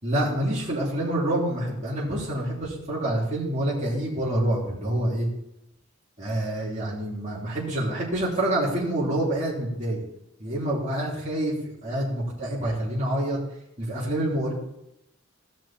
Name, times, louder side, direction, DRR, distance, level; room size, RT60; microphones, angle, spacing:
voice 1, 0.0-5.3 6.2-10.0 10.4-11.5 11.8-13.4 13.8-14.5, right 1 dB, 35° right, -7 dB, 3.5 m, -27 dB
16.5 x 6.1 x 4.4 m, 0.84 s
head